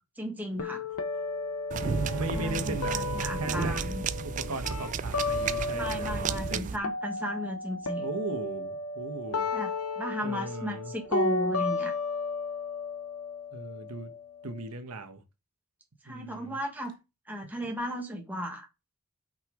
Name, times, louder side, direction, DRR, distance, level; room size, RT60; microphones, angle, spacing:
voice 1, 0.2-0.8 2.3-4.0 5.7-8.1 9.5-11.9 16.0-16.9 17.3-18.7, equal, 10° right, 1.4 m, -35 dB
sound 1, 0.6-6.6 6.8-14.6, left 3 dB, 80° left, 0.9 m, -34 dB
sound 2, 1.7-6.8, right 5 dB, 35° right, 0.3 m, -33 dB
Bowed string instrument, 1.8-5.4, right 6 dB, 65° right, 0.8 m, -41 dB
voice 2, 2.1-2.9 3.3-3.7 4.2-6.8 8.0-9.5 10.2-10.9 13.5-14.1 14.4-15.2 16.1-16.6, right 2 dB, 90° right, 1.2 m, -37 dB
6.1 x 5.5 x 3.7 m
head